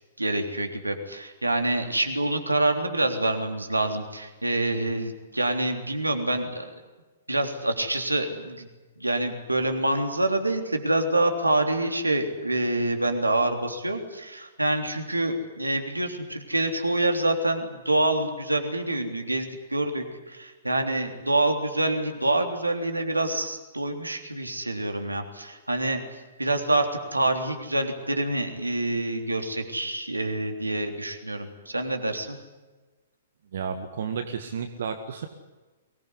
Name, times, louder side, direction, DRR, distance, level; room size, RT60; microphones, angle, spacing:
voice 1, 0.2-6.7 7.3-8.7 9.0-32.4, right 2 dB, 85° right, 5 dB, 3.4 m, -26 dB
voice 2, 33.5-35.3, right 6 dB, 55° right, 7 dB, 1.9 m, -32 dB
24.0 x 19.5 x 9.9 m, 1.2 s
figure-of-eight pair, 115°, 0 cm